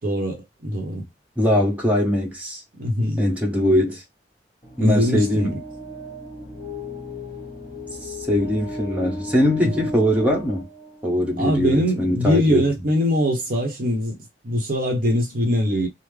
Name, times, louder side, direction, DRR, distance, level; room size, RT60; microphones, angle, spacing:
voice 1, 0.0-1.0 2.7-3.2 4.8-5.6 9.6-9.7 11.4-14.2 14.4-15.9, equal, 50° right, 0.8 m, -22 dB
voice 2, 1.4-2.6 3.2-4.0 4.8-5.6 8.0-10.7 11.0-12.6, left 1 dB, 10° right, 1.0 m, -21 dB
sound 1, 4.6-11.6, left 1 dB, 25° left, 1.3 m, -36 dB
3.5 x 2.0 x 3.2 m
head